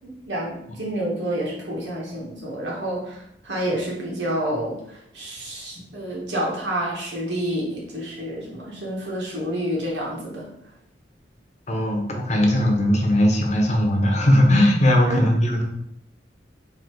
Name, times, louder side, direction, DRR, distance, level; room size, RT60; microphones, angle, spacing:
voice 1, 0.3-10.5 15.1-15.2, right 1 dB, 85° right, -4 dB, 1.6 m, -29 dB
voice 2, 11.7-15.6, left 1 dB, 40° left, 1 dB, 0.9 m, -19 dB
4.0 x 2.9 x 4.6 m, 0.75 s
head